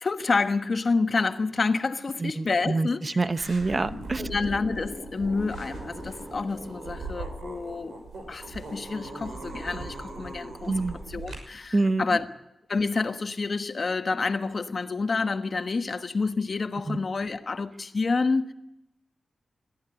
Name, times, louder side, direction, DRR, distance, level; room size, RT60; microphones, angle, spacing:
voice 1, 0.0-3.2 4.2-8.0 8.3-12.3 12.7-18.5, left 4 dB, 45° left, 1.3 m, -28 dB
voice 2, 2.2-4.2 10.7-11.0 11.7-12.0 16.9-17.0, right 3 dB, 30° right, 0.8 m, -26 dB
sound 1, 3.4-11.4, right 2 dB, 90° right, 6.0 m, -39 dB
21.0 x 14.5 x 9.9 m
wide cardioid pair, 130°, 0 cm